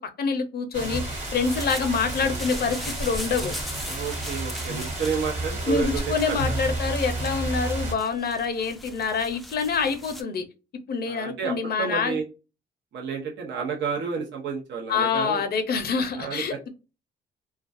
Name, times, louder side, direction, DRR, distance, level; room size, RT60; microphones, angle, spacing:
voice 1, 0.2-3.6 5.7-10.4 10.9-12.2 14.9-16.7, left 5 dB, 50° left, 0.6 m, -26 dB
sound 1, 0.7-7.9, right 1 dB, 35° right, 1.2 m, -31 dB
sound 2, 0.8-10.2, equal, ahead, 0.4 m, -41 dB
voice 2, 3.9-6.6 11.1-12.2 12.9-15.4 16.2-16.7, right 6 dB, 65° right, 0.6 m, -30 dB
2.2 x 2.2 x 2.4 m
cardioid pair, 90°, 20 cm